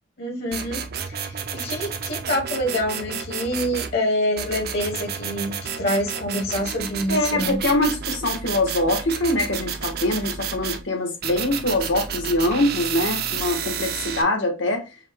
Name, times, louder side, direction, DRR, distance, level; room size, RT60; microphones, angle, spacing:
voice 1, 0.2-7.6, left 1 dB, 55° left, 1.1 m, -26 dB
sound 1, 0.5-3.9 4.4-10.8 11.2-14.2, right 7 dB, 55° right, 0.5 m, -31 dB
voice 2, 7.1-14.8, left 1 dB, 80° left, 1.4 m, -23 dB
5.5 x 2.2 x 3.4 m
head